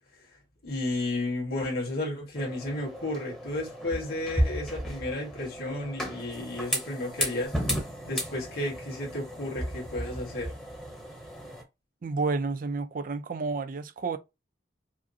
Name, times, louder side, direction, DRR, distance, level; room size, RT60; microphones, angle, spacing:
voice 1, 0.6-7.5 8.1-10.5, left 2 dB, 55° left, 1.7 m, -33 dB
sound 1, 2.4-11.6, equal, 5° left, 0.8 m, -34 dB
voice 2, 12.0-14.2, right 4 dB, 45° right, 0.4 m, -30 dB
4.9 x 2.0 x 2.7 m
head